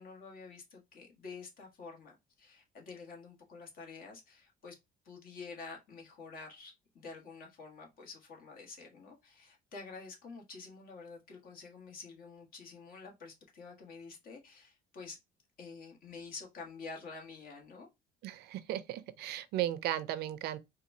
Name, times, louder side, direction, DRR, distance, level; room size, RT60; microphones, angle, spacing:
voice 1, 0.0-4.8 5.0-15.2 15.6-17.9, left 4 dB, 60° left, 1.4 m, -49 dB
voice 2, 18.2-20.6, right 13 dB, 75° right, 0.5 m, -36 dB
4.0 x 2.4 x 2.6 m
cardioid pair, 110°, 17 cm